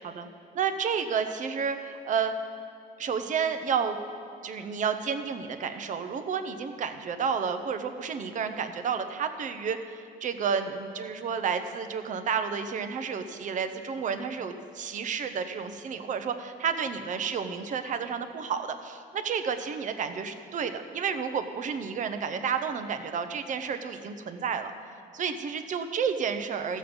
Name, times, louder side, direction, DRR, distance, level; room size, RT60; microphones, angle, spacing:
voice 1, 0.5-2.3 3.0-4.0 4.4-24.7 25.1-26.8, right 6 dB, 50° right, 8 dB, 0.8 m, -31 dB
13.0 x 7.6 x 5.2 m, 2.5 s
cardioid pair, 110°, 17 cm